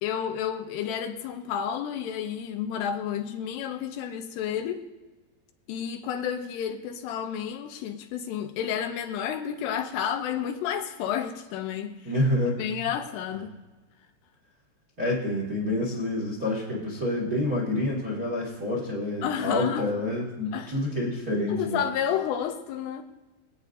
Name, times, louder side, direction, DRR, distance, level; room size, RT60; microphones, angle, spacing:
voice 1, 0.0-4.9 5.7-12.1 12.6-13.5 19.2-19.9 20.5-20.7 21.5-23.0, left 9 dB, 80° left, 2.8 m, -31 dB
voice 2, 12.0-12.6 15.0-21.8, left 1 dB, 35° right, 1.5 m, -28 dB
24.5 x 8.9 x 2.6 m
omnidirectional pair, 5.0 m